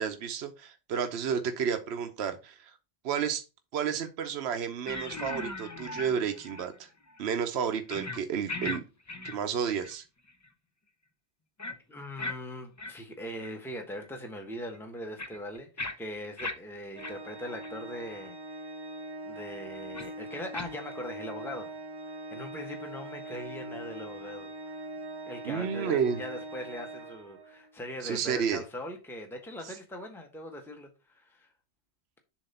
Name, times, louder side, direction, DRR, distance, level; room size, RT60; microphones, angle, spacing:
voice 1, 0.0-2.7 3.0-3.4 3.7-6.9 7.2-8.8 9.2-10.0 25.4-26.2 28.0-28.6, right 7 dB, 75° right, 1.0 m, -31 dB
sound 1, 4.9-6.8 7.1-7.2 7.9-8.2 8.5-8.8 9.1-9.9 10.3-10.5 11.6-11.7 12.2-12.4 12.8-12.9 13.4-13.5 14.0-14.1 14.6-16.5 17.0-17.1 17.6-17.7 18.2-18.3 19.9-20.1 20.5-20.7, left 2 dB, 25° left, 0.4 m, -38 dB
voice 2, 11.9-18.4 19.2-21.7 22.1-24.8 25.3-31.5, left 1 dB, ahead, 1.1 m, -41 dB
Organ, 17.0-27.7, right 1 dB, 35° right, 0.4 m, -42 dB
7.2 x 2.8 x 5.4 m
omnidirectional pair, 1.1 m